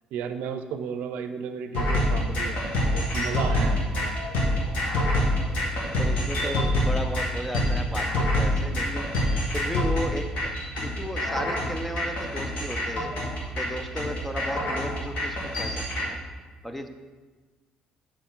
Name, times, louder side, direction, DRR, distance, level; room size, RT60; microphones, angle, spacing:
voice 1, 0.1-4.1 6.3-6.5, right 7 dB, 80° right, 9 dB, 0.5 m, -34 dB
sound 1, 1.7-16.1, left 1 dB, 70° left, 1.7 m, -26 dB
voice 2, 6.0-9.1 9.5-10.5 10.8-13.1 13.6-16.2 16.6-16.9, equal, 5° left, 7 dB, 0.4 m, -34 dB
6.8 x 6.0 x 3.7 m, 1.3 s
cardioid pair, 155°, 3 cm